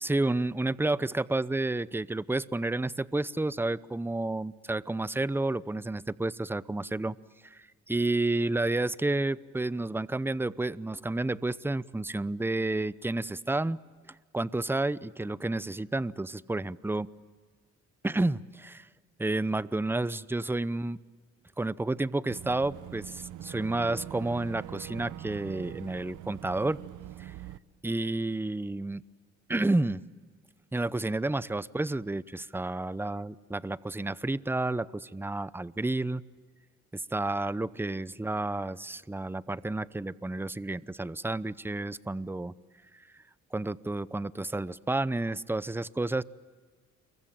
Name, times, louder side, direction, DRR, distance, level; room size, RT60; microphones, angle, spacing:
voice 1, 0.0-7.2 7.4-13.8 14.3-17.1 18.0-18.9 19.2-21.0 21.6-26.8 27.2-27.3 27.8-29.0 29.5-30.0 30.7-36.2 36.9-42.5 43.5-46.2, right 2 dB, 5° right, 18 dB, 0.8 m, -30 dB
Boat Water vehicle / Engine, 22.3-27.6, right 13 dB, 80° right, 1.0 m, -43 dB
29.0 x 23.0 x 8.9 m, 1.5 s
cardioid pair, 90°, 30 cm